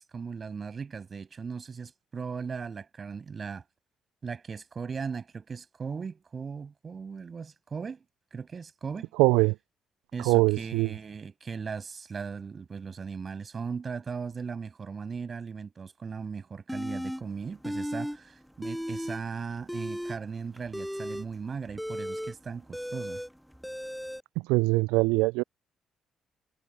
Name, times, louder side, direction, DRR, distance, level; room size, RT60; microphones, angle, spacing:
voice 1, 0.1-3.6 4.2-8.0 8.3-9.1 10.1-23.2, right 5 dB, 40° right, 6.9 m, -38 dB
voice 2, 9.2-9.6 10.2-10.9 24.4-25.4, right 24 dB, 75° right, 0.3 m, -22 dB
sound 1, 16.7-17.2 17.6-18.2 18.4-19.2 19.6-24.2, equal, ahead, 0.5 m, -35 dB
figure-of-eight pair, 45°, 0 cm